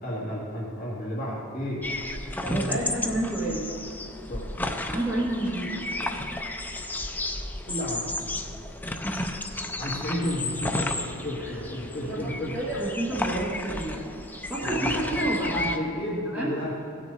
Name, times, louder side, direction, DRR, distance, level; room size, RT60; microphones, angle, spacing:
voice 1, 0.0-1.8 2.4-2.8 4.3-4.5 7.7-8.0 9.8-12.6 14.6-15.0 15.7-16.7, left 1 dB, 40° left, -7 dB, 1.9 m, -32 dB
sound 1, 1.8-15.8, left 2 dB, 10° left, 0.4 m, -33 dB
voice 2, 2.4-3.7 4.9-5.8 9.0-9.7 11.4-11.5 12.0-12.2 12.5-14.1 14.5-15.9 16.3-16.5, right 1 dB, 10° right, -8 dB, 1.4 m, -29 dB
17.0 x 6.2 x 3.9 m, 2.5 s
head